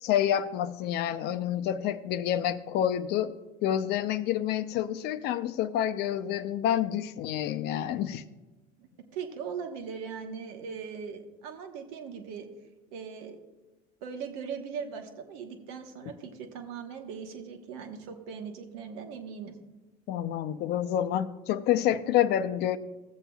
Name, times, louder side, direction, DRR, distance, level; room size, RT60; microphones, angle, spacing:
voice 1, 0.0-3.3 3.6-8.2 20.1-22.8, left 11 dB, 65° left, 10 dB, 0.6 m, -28 dB
voice 2, 8.8-12.5 12.9-13.4 14.0-19.6, right 6 dB, 85° right, 5 dB, 1.1 m, -39 dB
16.0 x 7.3 x 2.3 m, 1.1 s
supercardioid pair, 100°, 19 cm